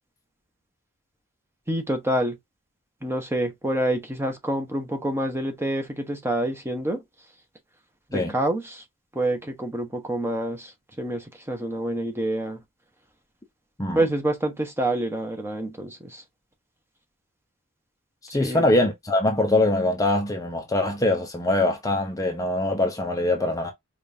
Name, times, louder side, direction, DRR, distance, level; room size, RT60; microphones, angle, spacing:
voice 1, 1.7-2.4 3.0-7.0 8.1-8.8 9.1-12.6 13.9-16.2 18.3-18.7, right 1 dB, 10° right, 0.9 m, -27 dB
voice 2, 18.3-23.7, left 2 dB, 15° left, 0.6 m, -23 dB
5.1 x 2.5 x 2.6 m
head